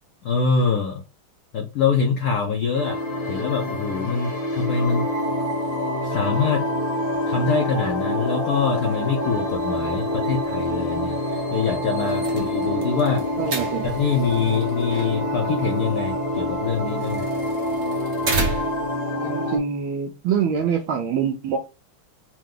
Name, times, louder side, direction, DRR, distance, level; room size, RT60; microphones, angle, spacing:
voice 1, 0.2-1.0 1.5-3.0 3.3-5.1 6.0-6.6 7.3-11.2 11.5-13.3 13.9-17.3, left 5 dB, 70° left, 0.9 m, -24 dB
sound 1, 2.7-19.6, left 1 dB, 40° left, 0.9 m, -26 dB
sound 2, 12.0-18.9, right 3 dB, 50° right, 1.2 m, -33 dB
voice 2, 13.4-13.9 19.2-21.6, right 7 dB, 75° right, 1.3 m, -25 dB
4.7 x 2.2 x 3.7 m
omnidirectional pair, 2.4 m